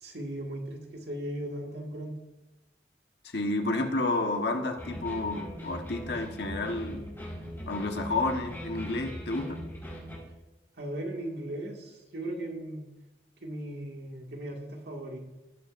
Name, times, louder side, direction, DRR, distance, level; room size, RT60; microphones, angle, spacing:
voice 1, 0.0-2.2 10.8-12.9 13.4-15.2, right 1 dB, 65° right, 0 dB, 2.1 m, -37 dB
voice 2, 3.3-7.1 7.7-9.6, left 2 dB, 70° left, 4 dB, 1.4 m, -30 dB
sound 1, 4.8-10.2, equal, 15° left, 4.6 m, -40 dB
19.0 x 9.0 x 2.6 m, 1.0 s
head